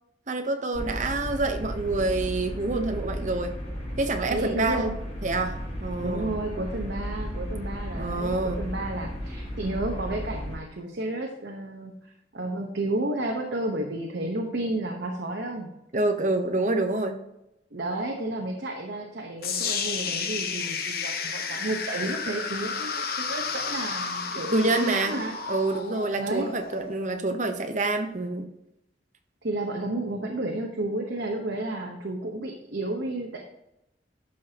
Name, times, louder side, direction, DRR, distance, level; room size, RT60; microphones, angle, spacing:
voice 1, 0.3-3.6 4.0-4.9 5.2-6.3 7.9-8.6 15.9-17.2 24.5-28.5, right 2 dB, 45° right, 6 dB, 0.9 m, -27 dB
sound 1, 0.7-10.6, equal, 40° left, 3.4 m, -34 dB
voice 2, 4.3-4.9 6.0-11.9 12.3-15.7 17.7-25.4 26.2-26.5 29.4-33.4, right 2 dB, 70° right, 1 dB, 1.1 m, -31 dB
sound 2, 19.4-27.5, left 5 dB, 55° left, 1.0 m, -32 dB
11.5 x 6.0 x 2.9 m, 0.87 s
head